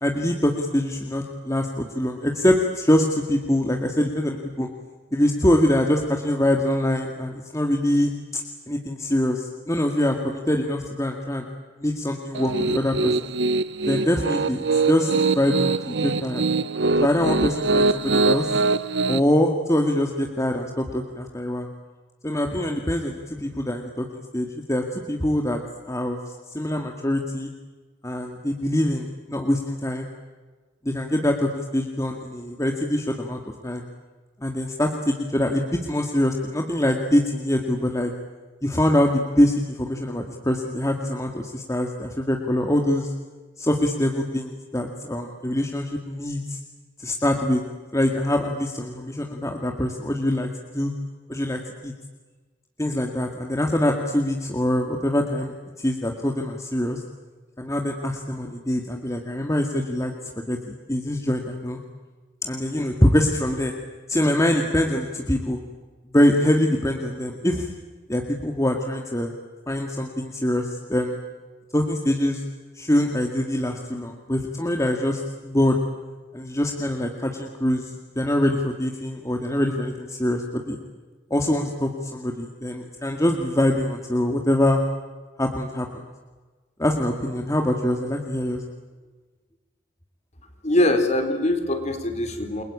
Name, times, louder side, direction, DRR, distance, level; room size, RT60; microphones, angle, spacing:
voice 1, 0.0-4.7 5.1-8.4 8.7-11.5 11.8-13.1 13.9-16.4 17.0-18.5 19.1-21.7 22.2-25.6 25.9-26.2 26.5-27.5 28.0-30.1 30.8-33.8 34.4-38.1 38.6-43.1 43.6-46.6 47.0-47.6 47.9-50.9 51.3-51.9 52.8-55.5 55.8-57.0 57.6-60.1 60.5-61.8 62.4-63.7 64.1-65.6 66.1-67.7 68.1-69.3 69.7-71.2 71.7-72.4 72.8-75.8 76.3-80.8 81.3-84.8 85.4-86.0 86.8-88.6, left 1 dB, 15° left, 2 dB, 2.1 m, -24 dB
Piano, 12.3-19.2, right 3 dB, 65° right, 0.9 m, -23 dB
voice 2, 90.6-92.6, left 1 dB, 40° left, 7 dB, 3.9 m, -22 dB
29.5 x 23.0 x 8.7 m, 1.3 s
head